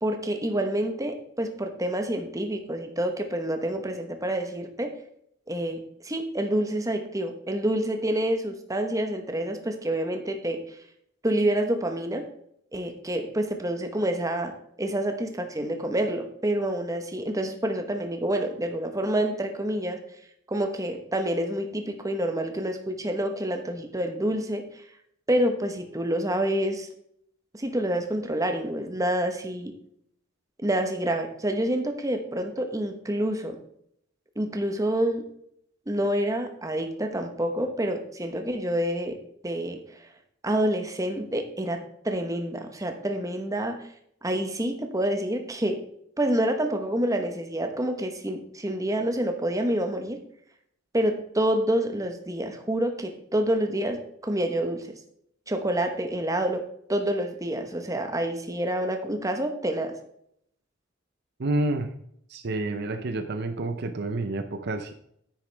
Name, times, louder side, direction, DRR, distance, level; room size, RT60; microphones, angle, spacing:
voice 1, 0.0-4.9 5.5-10.6 11.2-12.3 12.7-20.0 20.5-24.6 25.3-26.9 27.5-29.7 30.6-33.6 34.4-35.2 35.9-39.2 39.4-39.8 40.4-43.8 44.2-45.8 46.2-50.2 50.9-55.0 55.5-56.6 56.9-59.9, right 1 dB, 15° right, 5 dB, 1.2 m, -27 dB
voice 2, 61.4-61.9 62.3-64.9, right 2 dB, 55° right, 8 dB, 0.7 m, -29 dB
9.8 x 9.4 x 3.4 m, 0.70 s
head